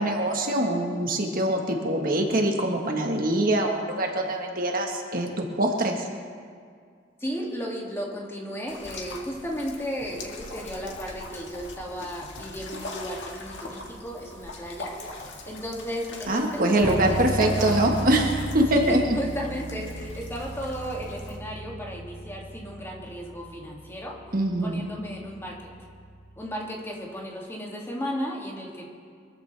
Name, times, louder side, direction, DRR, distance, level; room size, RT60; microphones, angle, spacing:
voice 1, 0.0-6.1 16.3-19.2 24.3-24.8, right 1 dB, 50° right, 2 dB, 1.4 m, -24 dB
voice 2, 7.2-17.9 18.7-24.2 24.6-25.7 26.4-28.8, equal, 15° left, -3 dB, 2.4 m, -34 dB
sound 1, 8.7-21.4, left 2 dB, 70° left, 1.8 m, -41 dB
Bass guitar, 16.8-26.5, equal, 35° left, 2.7 m, -36 dB
23.5 x 14.0 x 3.4 m, 2.1 s
head